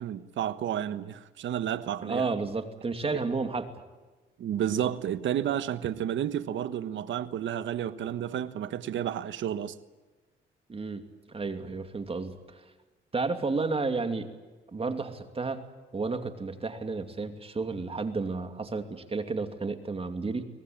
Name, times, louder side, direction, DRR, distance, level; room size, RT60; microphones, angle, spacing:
voice 1, 0.0-2.3 4.4-9.7, right 10 dB, 70° right, 1.4 m, -31 dB
voice 2, 2.0-3.7 10.7-12.6 13.1-14.3 14.7-15.6 15.9-20.4, right 4 dB, 30° right, 2.7 m, -32 dB
24.0 x 19.0 x 8.8 m
cardioid pair, 90°, 20 cm